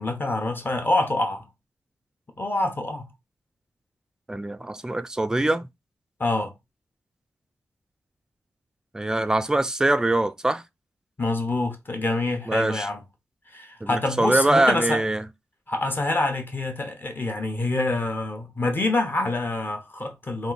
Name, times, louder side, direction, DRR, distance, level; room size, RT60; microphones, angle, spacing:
voice 1, 0.0-1.4 2.4-3.1 6.2-6.5 11.2-13.0 13.5-15.0 15.7-20.5, left 2 dB, 30° left, 1.0 m, -26 dB
voice 2, 4.3-5.7 8.9-10.6 12.5-12.9 13.8-15.3, right 2 dB, 10° right, 0.3 m, -23 dB
3.6 x 2.6 x 4.0 m
wide cardioid pair, 130°, 7 cm